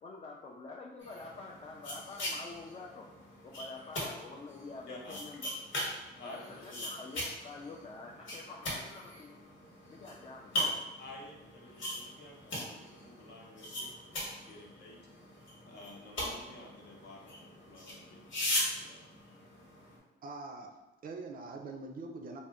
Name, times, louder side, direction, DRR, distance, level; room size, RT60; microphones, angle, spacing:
voice 1, 0.0-3.1 3.4-5.5 6.2-9.4 9.9-10.8, left 3 dB, 30° left, -2 dB, 0.4 m, -47 dB
sound 1, 1.0-20.0, left 1 dB, 75° left, 1.2 m, -40 dB
voice 2, 4.9-5.2 6.2-6.9 11.0-15.0 15.6-19.4, left 2 dB, 60° left, -1 dB, 0.8 m, -52 dB
voice 3, 20.2-20.8 21.0-22.4, right 3 dB, 45° right, 3 dB, 0.4 m, -43 dB
2.6 x 2.1 x 3.5 m, 1.1 s
cardioid pair, 90°, 20 cm